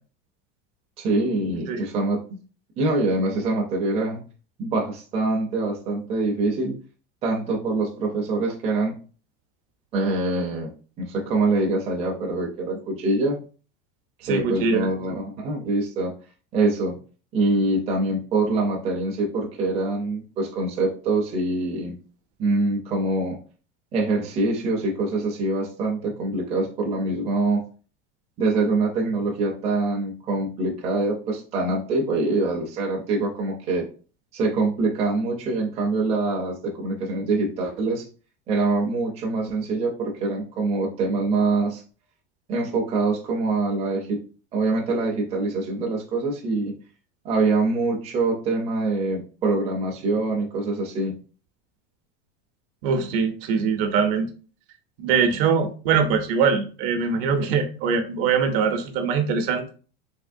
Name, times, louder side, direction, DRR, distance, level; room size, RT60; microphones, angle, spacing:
voice 1, 1.0-2.2 2.8-4.2 4.6-6.8 7.2-8.9 9.9-10.7 11.0-13.4 14.3-16.1 16.5-17.0 17.3-22.0 22.4-23.4 23.9-27.6 28.4-33.9 34.3-38.1 38.5-41.8 42.5-44.2 44.5-46.7 47.2-51.1, right 2 dB, 20° right, -1 dB, 0.5 m, -24 dB
voice 2, 14.2-15.2 52.8-54.3 55.0-59.6, right 5 dB, 60° right, 6 dB, 0.6 m, -22 dB
3.4 x 2.8 x 2.5 m, 0.38 s
supercardioid pair, 170°, 32 cm